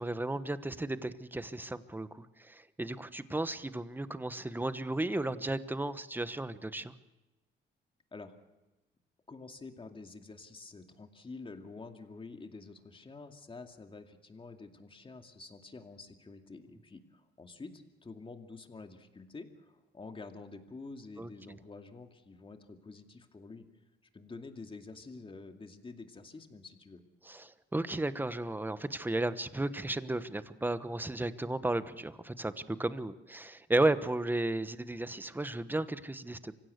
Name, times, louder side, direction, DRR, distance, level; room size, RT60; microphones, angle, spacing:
voice 1, 0.0-6.9 21.2-21.3 27.3-36.6, right 2 dB, 10° right, 13 dB, 1.1 m, -34 dB
voice 2, 9.3-23.7 24.1-27.0, left 3 dB, 25° left, 5 dB, 2.4 m, -48 dB
25.0 x 16.5 x 8.1 m, 1.1 s
cardioid pair, 90°, 20 cm